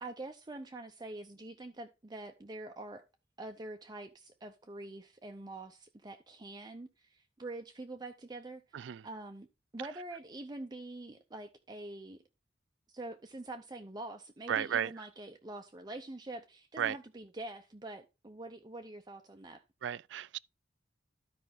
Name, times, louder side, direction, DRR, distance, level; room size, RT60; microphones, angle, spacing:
voice 1, 0.0-3.0 3.4-8.8 9.0-9.5 9.7-12.2 12.9-19.6, right 2 dB, 20° right, 0.6 m, -45 dB
voice 2, 8.7-9.1 14.5-14.9 16.8-17.0 19.8-20.4, right 9 dB, 75° right, 0.3 m, -33 dB
12.5 x 5.2 x 3.6 m
head